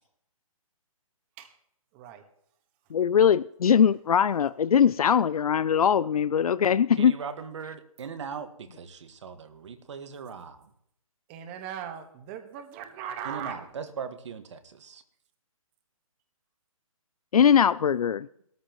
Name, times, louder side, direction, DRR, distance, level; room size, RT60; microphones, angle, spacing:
voice 1, 2.9-7.2 17.3-18.3, left 8 dB, 90° left, 17 dB, 0.4 m, -21 dB
voice 2, 7.0-10.7 13.2-15.0, right 6 dB, 55° right, 9 dB, 1.6 m, -39 dB
voice 3, 11.3-13.7, right 8 dB, 20° right, 7 dB, 1.4 m, -38 dB
19.0 x 13.5 x 3.0 m, 0.72 s
hypercardioid pair, 160°, 18 cm